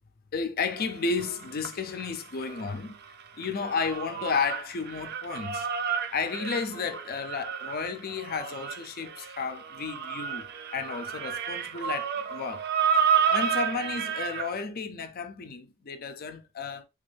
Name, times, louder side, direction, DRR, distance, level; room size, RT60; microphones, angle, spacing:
voice 1, 0.3-3.0 3.4-12.7 13.3-16.8, left 5 dB, 45° left, 0.5 m, -32 dB
sound 1, 0.8-2.8 3.0-14.6, right 7 dB, 50° right, 0.4 m, -31 dB
3.5 x 2.6 x 3.3 m
head